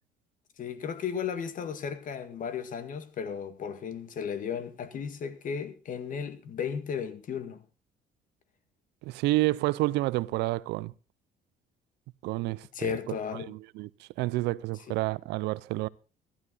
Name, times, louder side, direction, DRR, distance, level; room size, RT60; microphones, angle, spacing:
voice 1, 0.6-7.6 12.7-13.5, left 7 dB, 50° left, 1.9 m, -35 dB
voice 2, 9.1-10.9 12.2-12.9 13.5-13.9 14.2-15.9, right 19 dB, 90° right, 0.6 m, -29 dB
14.5 x 12.0 x 4.0 m
cardioid pair, 110°, 17 cm